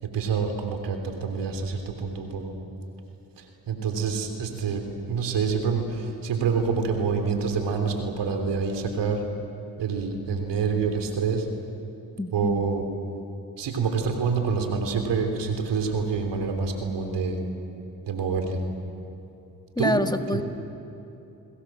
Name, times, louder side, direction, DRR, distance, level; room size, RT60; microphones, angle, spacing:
voice 1, 0.0-2.5 3.4-9.3 9.8-11.5 12.3-12.8 13.6-17.4 18.1-18.6 19.8-19.9 20.3-20.4, right 5 dB, 75° right, 4 dB, 3.4 m, -27 dB
voice 2, 12.2-12.6 19.8-20.4, left 1 dB, 10° left, 6 dB, 1.8 m, -26 dB
29.0 x 20.0 x 7.6 m, 2.9 s
supercardioid pair, 45°, 42 cm